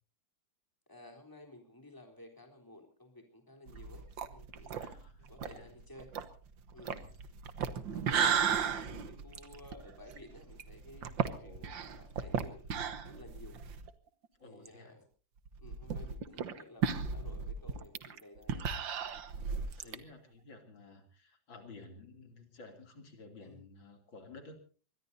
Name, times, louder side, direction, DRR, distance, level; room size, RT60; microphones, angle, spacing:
voice 1, 0.9-4.8 5.3-6.1 6.7-7.0 7.9-12.6 13.0-13.6 14.4-15.0 15.6-18.7 19.8-20.1 23.4-23.6, left 1 dB, 10° left, 2 dB, 3.7 m, -54 dB
sound 1, 3.7-13.9 14.2-14.3 14.7-14.8 15.5-20.0, right 7 dB, 75° right, 2.0 m, -35 dB
voice 2, 4.7-5.7 6.9-7.1 7.9-8.5 11.2-11.7 14.4-14.9 19.3-24.6, left 3 dB, 75° left, 5 dB, 3.6 m, -52 dB
24.0 x 21.5 x 2.7 m, 0.39 s
omnidirectional pair, 2.1 m